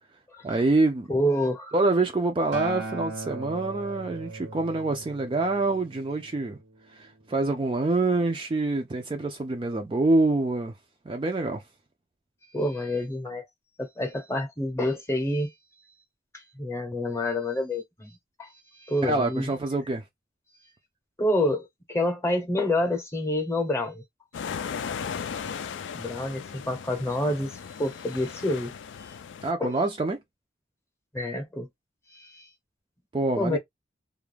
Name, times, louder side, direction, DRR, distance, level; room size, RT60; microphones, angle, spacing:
voice 1, 0.4-1.1 1.7-6.6 6.9-10.7 11.1-11.6 19.0-20.0 29.4-30.2 33.1-33.6, right 2 dB, 25° right, 0.3 m, -26 dB
voice 2, 1.1-1.7 12.5-13.5 13.8-15.5 16.3-18.1 18.4-18.5 18.7-19.5 21.2-24.0 25.9-27.5 27.8-28.7 29.0-29.1 29.6-29.7 31.1-31.7 32.1-32.5 33.4-33.6, left 1 dB, 15° left, 0.7 m, -28 dB
Acoustic guitar, 2.5-6.8 7.7-7.8, right 3 dB, 85° right, 0.7 m, -39 dB
sound 1, 24.3-29.5, left 7 dB, 80° left, 0.3 m, -36 dB
2.3 x 2.1 x 3.2 m
head